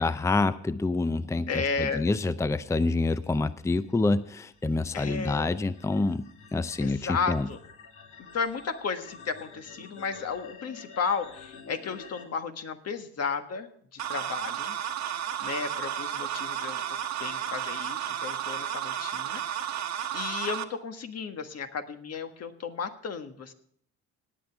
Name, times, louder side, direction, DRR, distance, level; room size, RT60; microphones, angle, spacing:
voice 1, 0.0-6.3 6.5-7.5, left 3 dB, 10° left, 14 dB, 0.5 m, -27 dB
voice 2, 1.5-2.1 4.9-5.5 6.8-7.6 8.2-14.8 15.4-16.8 17.2-19.8 20.1-23.5, left 5 dB, 55° left, 7 dB, 1.5 m, -33 dB
sound 1, 3.0-12.2, left 4 dB, 75° left, 2.7 m, -50 dB
sound 2, 14.0-20.6, right 10 dB, 65° right, 1.1 m, -33 dB
18.5 x 9.0 x 3.4 m, 0.62 s
cardioid pair, 90°, 30 cm